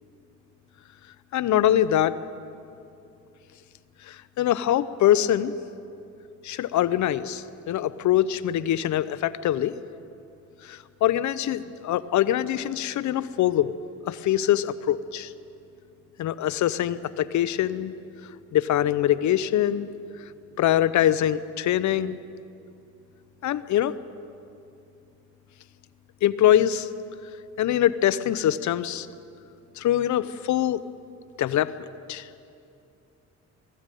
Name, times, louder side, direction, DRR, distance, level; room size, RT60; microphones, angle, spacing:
voice 1, 1.3-2.2 4.1-5.5 6.4-9.7 10.6-13.7 14.1-15.3 16.2-17.9 18.5-19.9 20.6-22.2 23.4-23.9 26.2-26.9 27.6-29.1 29.8-30.8 31.4-32.3, left 11 dB, 70° left, 15 dB, 0.8 m, -23 dB
20.0 x 14.5 x 9.2 m, 2.7 s
cardioid pair, 90°, 30 cm